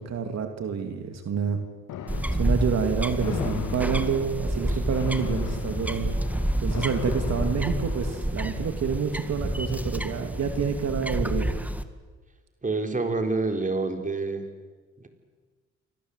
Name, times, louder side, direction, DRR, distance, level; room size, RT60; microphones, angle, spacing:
voice 1, 0.0-1.6 2.3-6.2 6.6-11.5, right 6 dB, 60° right, 6 dB, 2.9 m, -28 dB
sound 1, 1.9-8.3, left 8 dB, 80° left, 2.5 m, -38 dB
sound 2, 2.1-11.8, right 1 dB, 5° right, 2.0 m, -29 dB
voice 2, 12.6-14.5, right 3 dB, 25° right, 5 dB, 4.2 m, -27 dB
29.5 x 24.0 x 8.3 m, 1.4 s
cardioid pair, 90°, 30 cm